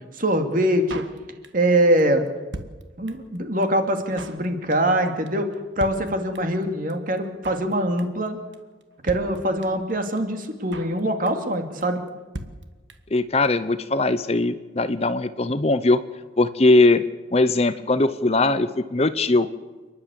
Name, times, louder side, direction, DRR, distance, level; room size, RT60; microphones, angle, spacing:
voice 1, 0.1-1.0 1.5-2.2 3.0-8.4 9.0-12.0, right 1 dB, 45° right, 5 dB, 2.5 m, -23 dB
Drum kit, 0.9-1.7 2.0-2.1 2.3-3.4 3.6-3.7 3.9-4.5 4.7-5.0 5.3-5.4 5.5-5.6 5.8-6.6 6.9-7.0 7.2-7.7 8.0-8.3 8.5-8.6 8.8-8.9 9.1-9.9 10.2-10.3 10.4-11.0 11.3-11.5 11.8-11.9 12.1-12.2 12.3-13.2 13.4-13.5 13.7-13.8, right 1 dB, 65° right, 1.6 m, -38 dB
voice 2, 13.1-16.0 16.4-17.0 17.3-19.5, left 2 dB, 30° left, 13 dB, 0.7 m, -20 dB
29.0 x 11.0 x 8.4 m, 1.3 s
head